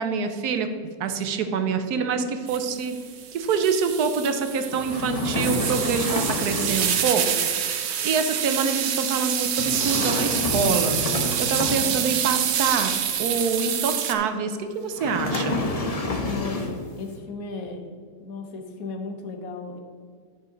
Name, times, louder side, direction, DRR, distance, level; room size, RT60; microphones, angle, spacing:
voice 1, 0.0-3.0 3.3-7.3 7.5-11.1 11.4-15.6, right 5 dB, 80° right, 8 dB, 1.3 m, -26 dB
sound 1, 2.5-14.1, right 8 dB, 60° right, 0.7 m, -27 dB
sound 2, 4.7-6.9 9.5-12.2 14.9-16.9, left 2 dB, 30° left, 0.8 m, -28 dB
voice 2, 16.2-17.9 18.2-19.8, left 4 dB, 65° left, 4 dB, 1.3 m, -35 dB
10.0 x 6.3 x 3.8 m, 2.1 s
omnidirectional pair, 1.6 m